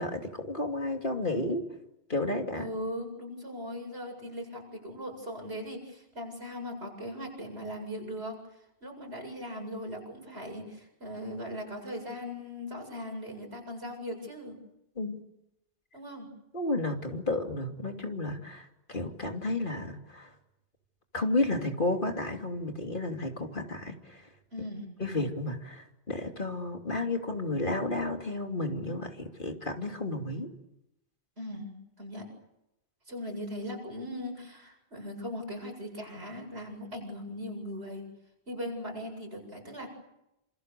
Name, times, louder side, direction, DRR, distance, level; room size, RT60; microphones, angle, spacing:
voice 1, 0.0-1.7 2.1-2.7 15.0-15.2 16.5-20.3 21.1-24.2 25.0-30.5, left 2 dB, 55° left, 3 dB, 3.1 m, -32 dB
voice 2, 2.5-8.4 8.8-14.6 15.9-16.3 24.5-24.9 31.4-32.3 33.1-38.1 38.5-39.9, equal, 85° right, 2 dB, 8.2 m, -39 dB
28.0 x 27.0 x 6.9 m, 0.88 s
omnidirectional pair, 1.1 m